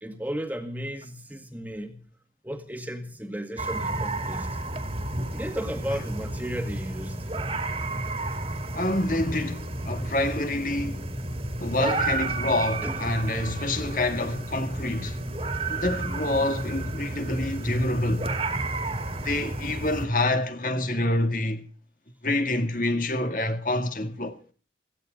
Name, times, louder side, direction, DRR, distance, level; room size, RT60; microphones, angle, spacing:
voice 1, 0.0-2.0 2.4-4.6 5.3-7.3 12.8-13.1, equal, 10° right, 1.9 m, -34 dB
sound 1, 3.6-20.1, right 2 dB, 35° right, 2.4 m, -31 dB
voice 2, 8.7-11.1 11.6-15.2 15.7-18.3 19.2-21.6 22.2-24.4, left 1 dB, 50° left, 1.9 m, -27 dB
17.5 x 15.5 x 3.9 m
head